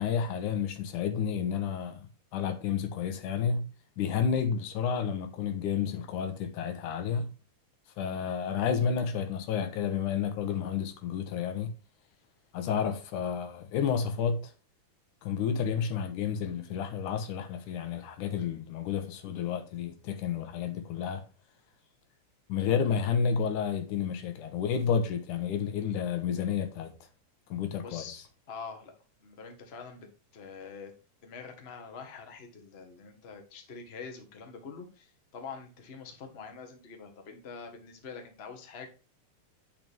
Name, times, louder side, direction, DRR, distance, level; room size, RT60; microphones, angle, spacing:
voice 1, 0.0-2.1 2.3-3.7 4.0-7.3 8.0-11.7 12.5-14.5 15.2-21.2 22.5-27.0 27.5-28.0, left 7 dB, 85° left, 2.7 m, -30 dB
voice 2, 27.8-30.1 30.3-30.9 31.2-38.9, left 5 dB, 30° left, 1.2 m, -45 dB
9.3 x 6.0 x 3.6 m
omnidirectional pair, 3.5 m